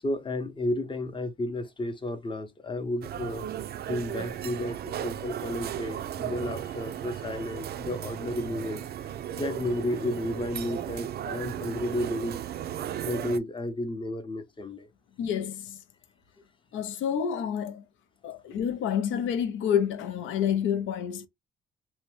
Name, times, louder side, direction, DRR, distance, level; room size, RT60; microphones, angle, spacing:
voice 1, 0.0-3.4 3.9-12.4 13.0-14.9, left 1 dB, 25° left, 0.7 m, -32 dB
sound 1, 3.0-13.4, right 10 dB, 55° right, 0.4 m, -35 dB
voice 2, 15.2-15.8 16.7-17.8 18.2-21.3, left 8 dB, 80° left, 0.5 m, -28 dB
2.7 x 2.1 x 3.0 m
cardioid pair, 90°, 20 cm